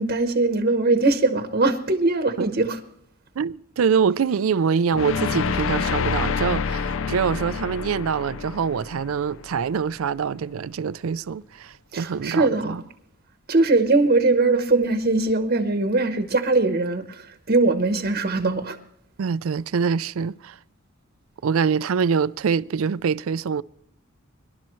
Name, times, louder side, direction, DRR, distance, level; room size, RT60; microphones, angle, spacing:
voice 1, 0.0-2.8 11.9-12.7 13.5-18.8, right 3 dB, 45° right, 0.9 m, -21 dB
voice 2, 3.4-12.8 19.2-20.6 21.4-23.6, right 6 dB, 75° right, 0.4 m, -24 dB
sound 1, 4.9-10.0, left 5 dB, 65° left, 0.5 m, -28 dB
23.5 x 12.0 x 3.1 m
head